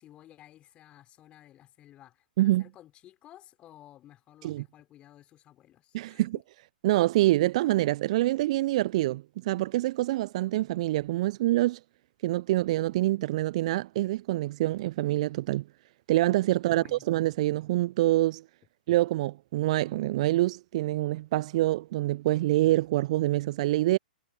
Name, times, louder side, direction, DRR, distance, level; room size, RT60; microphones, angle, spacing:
voice 1, 0.0-6.3 16.6-17.0, left 13 dB, 25° left, 4.5 m, -54 dB
voice 2, 6.8-11.8 12.2-15.6 16.1-18.4 18.9-24.0, right 16 dB, 45° right, 0.7 m, -26 dB
figure-of-eight pair, 115°, 5 cm